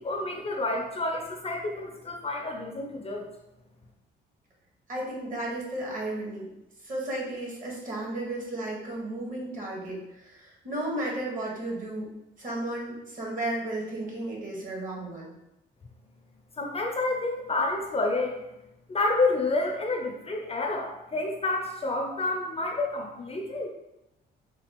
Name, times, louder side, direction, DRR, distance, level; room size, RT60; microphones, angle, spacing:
voice 1, 0.0-3.3 16.6-18.4 18.9-23.7, left 2 dB, 30° left, 1 dB, 0.6 m, -29 dB
voice 2, 4.9-6.5 6.8-12.1 12.4-15.3, right 1 dB, 40° right, -3 dB, 1.5 m, -34 dB
4.0 x 2.4 x 3.0 m, 0.91 s
cardioid pair, 90°, 20 cm